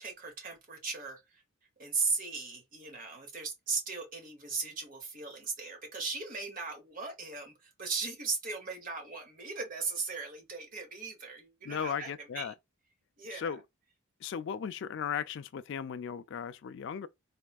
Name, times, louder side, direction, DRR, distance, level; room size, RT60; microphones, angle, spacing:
voice 1, 0.0-1.4 1.8-12.5 13.2-13.6, right 4 dB, 40° right, 1.1 m, -37 dB
voice 2, 11.6-12.5 13.3-13.6 14.2-17.1, left 7 dB, 55° left, 0.3 m, -36 dB
4.3 x 2.3 x 2.3 m
head